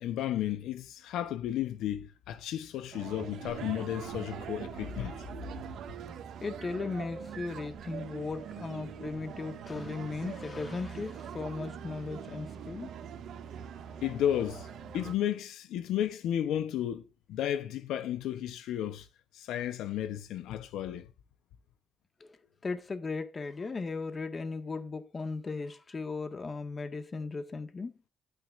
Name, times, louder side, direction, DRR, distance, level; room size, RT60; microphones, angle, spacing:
voice 1, 0.0-5.2 14.0-14.7 14.9-19.1 19.3-21.1, left 11 dB, 90° left, 0.8 m, -33 dB
sound 1, 2.9-15.1, right 8 dB, 75° right, 1.8 m, -43 dB
voice 2, 6.4-12.9 22.2-22.4 22.6-27.9, left 4 dB, 35° left, 1.7 m, -37 dB
12.0 x 9.3 x 2.6 m
cardioid pair, 90°, 0 cm